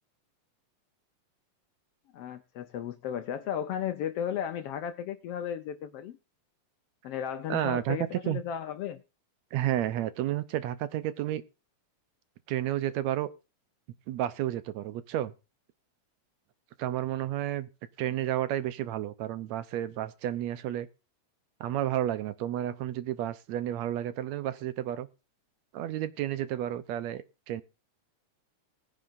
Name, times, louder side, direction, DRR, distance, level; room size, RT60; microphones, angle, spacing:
voice 1, 2.1-6.2 7.0-9.0, left 9 dB, 70° left, 1.5 m, -34 dB
voice 2, 7.5-8.0 8.3-8.4 9.5-11.4 12.5-13.3 14.1-15.3 16.8-17.7 18.0-20.9 21.6-25.1 25.7-27.6, right 12 dB, 75° right, 2.0 m, -31 dB
20.0 x 9.9 x 2.6 m
omnidirectional pair, 3.3 m